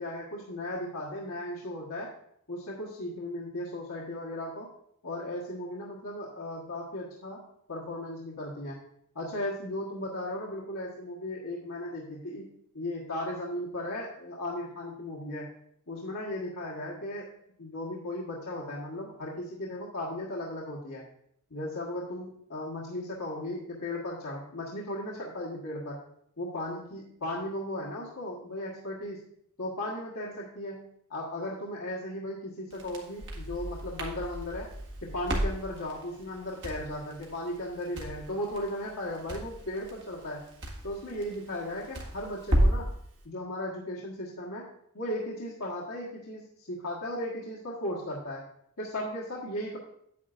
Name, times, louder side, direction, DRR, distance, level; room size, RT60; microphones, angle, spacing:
voice 1, 0.0-2.1 2.5-4.7 5.0-7.4 7.7-8.8 9.1-12.5 12.7-15.5 15.9-17.3 17.6-21.1 21.5-26.0 26.4-29.2 29.6-34.7 35.0-40.4 40.8-42.9 43.2-44.7 44.9-48.4 48.8-49.8, left 1 dB, 75° left, -5 dB, 1.4 m, -36 dB
Crackle, 32.7-42.9, equal, 55° right, 1.7 m, -33 dB
9.3 x 8.5 x 2.5 m, 0.70 s
head